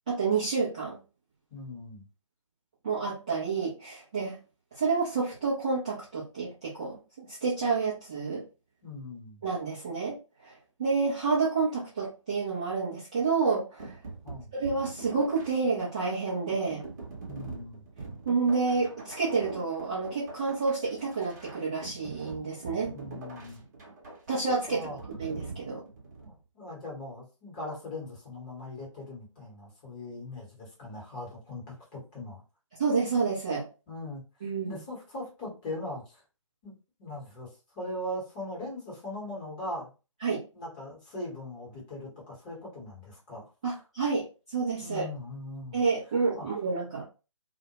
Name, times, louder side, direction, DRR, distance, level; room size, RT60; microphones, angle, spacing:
voice 1, 0.1-1.0 2.8-4.4 4.8-8.4 9.4-10.5 10.8-13.9 14.5-16.8 18.3-22.9 24.3-24.9 25.2-25.8 32.8-33.7 34.4-34.7 40.2-40.4 43.6-44.3 44.5-45.1 45.7-47.0, right 4 dB, 15° right, -9 dB, 0.4 m, -29 dB
voice 2, 1.5-2.1 8.8-9.4 14.2-14.5 17.3-17.8 22.8-23.6 24.6-25.0 26.2-32.4 33.9-34.2 34.6-36.2 36.6-36.7 37.0-39.9 40.5-43.8 44.8-45.8 46.3-46.5, left 1 dB, 15° left, -5 dB, 0.9 m, -40 dB
sound 1, 13.8-26.4, right 3 dB, 30° right, 0.7 m, -43 dB
2.1 x 2.1 x 2.8 m, 0.31 s
figure-of-eight pair, 145°, 17 cm